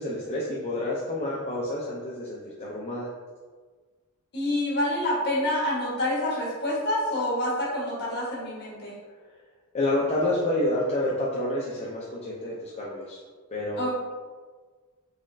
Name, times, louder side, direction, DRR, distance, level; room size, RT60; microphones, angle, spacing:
voice 1, 0.0-3.1 9.7-13.2 13.5-13.9, left 1 dB, 30° left, -6 dB, 0.5 m, -28 dB
voice 2, 4.3-8.9 13.8-13.9, left 1 dB, 50° left, -6 dB, 1.4 m, -27 dB
4.0 x 3.0 x 2.6 m, 1.5 s
head